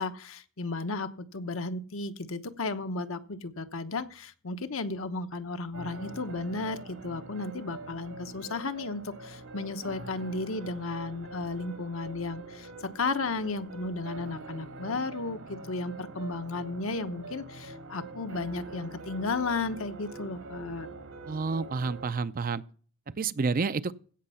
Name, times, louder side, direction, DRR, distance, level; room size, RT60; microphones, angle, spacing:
voice 1, 0.0-12.7 12.9-20.9, left 3 dB, 70° left, 1.0 m, -34 dB
sound 1, 5.7-22.1, right 2 dB, 80° right, 2.5 m, -44 dB
voice 2, 21.3-22.6 23.2-23.9, right 4 dB, 40° right, 0.5 m, -29 dB
16.0 x 6.2 x 5.6 m
head